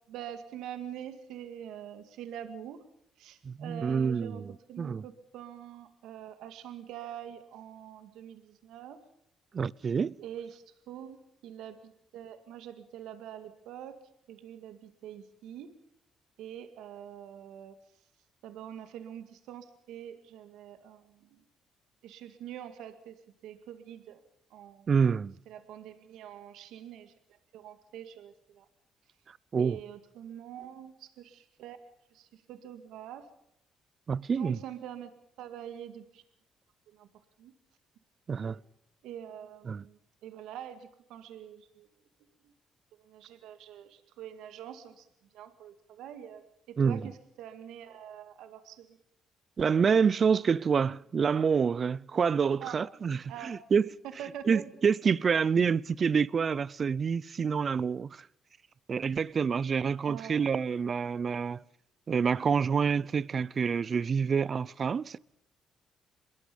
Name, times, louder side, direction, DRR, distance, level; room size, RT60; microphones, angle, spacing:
voice 1, 0.1-2.8 3.2-9.0 10.2-14.0 14.3-15.8 16.4-17.8 18.4-21.3 22.0-23.1 23.4-24.2 24.5-24.9 25.5-27.1 27.5-28.7 29.6-31.8 32.1-33.3 34.3-35.1 35.4-36.2 36.9-37.1 37.4-37.5 38.4-38.6 39.0-41.9 43.0-45.1 45.3-49.0 52.6-52.8 53.3-53.5 54.2-54.6 60.0-60.4, right 10 dB, 90° right, 2.1 m, -45 dB
voice 2, 3.4-5.0 9.5-10.1 24.9-25.3 29.5-29.8 34.1-34.6 38.3-38.6 39.7-39.8 46.8-47.0 49.6-53.9 54.4-58.2 58.9-61.6 62.1-65.2, right 6 dB, 45° right, 0.7 m, -27 dB
25.0 x 22.0 x 5.4 m
cardioid pair, 90°, 0 cm